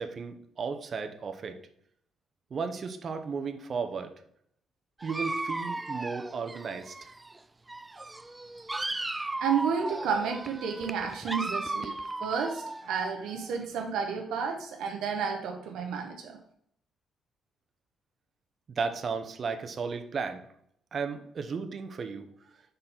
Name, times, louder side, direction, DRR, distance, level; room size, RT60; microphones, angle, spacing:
voice 1, 0.0-1.6 2.5-4.1 5.0-7.1 18.7-20.4 20.9-22.3, right 5 dB, 45° right, 7 dB, 0.8 m, -34 dB
Dog, 5.0-7.4 7.7-13.6, right 2 dB, 15° right, 0.4 m, -36 dB
voice 2, 9.1-16.4, right 6 dB, 85° right, 2 dB, 0.9 m, -31 dB
5.2 x 4.3 x 5.8 m, 0.68 s
cardioid pair, 90°, 0 cm